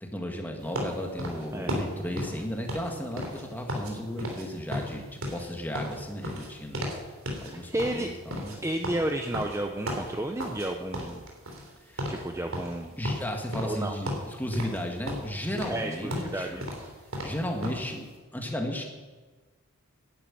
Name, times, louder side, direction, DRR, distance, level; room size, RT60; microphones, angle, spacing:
voice 1, 0.0-6.9 7.4-8.6 11.9-12.1 13.0-16.6 17.2-18.1 18.3-18.8, equal, 10° left, 2 dB, 1.9 m, -34 dB
sound 1, 0.7-3.9 4.2-4.5 4.7-7.0 7.3-7.5 7.8-10.7 10.9-11.7 12.0-12.2 12.5-13.8 14.1-14.8 15.1-17.8, equal, 75° right, 3.6 m, -34 dB
voice 2, 7.5-8.1 8.6-11.2 12.1-12.9 13.6-14.0 15.7-16.6, right 1 dB, 15° right, 4 dB, 0.7 m, -32 dB
11.5 x 9.8 x 9.2 m, 1.3 s
head